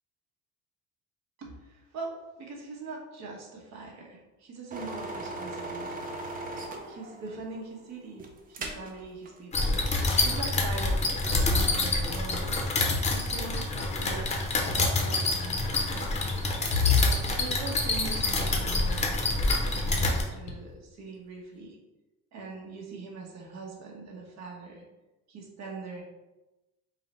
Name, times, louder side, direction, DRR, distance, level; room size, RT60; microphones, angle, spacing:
voice 1, 1.4-6.2 6.9-8.2 8.5-9.8 10.2-12.6 13.0-14.3 14.6-16.0 17.0-21.8 22.3-24.8 25.3-26.0, right 3 dB, 60° right, -1 dB, 1.2 m, -42 dB
sound 1, 4.7-9.0 9.3-9.4, right 2 dB, 30° right, 0.5 m, -38 dB
sound 2, 8.5-8.6 9.0-9.3 9.5-11.2 12.0-12.5 12.7-13.0 13.8-14.7 16.1-19.7 20.0-21.0, left 5 dB, 85° left, 0.9 m, -33 dB
sound 3, 9.5-20.2, left 2 dB, 20° left, 0.7 m, -27 dB
5.5 x 2.2 x 4.1 m, 1.0 s
cardioid pair, 165°, 31 cm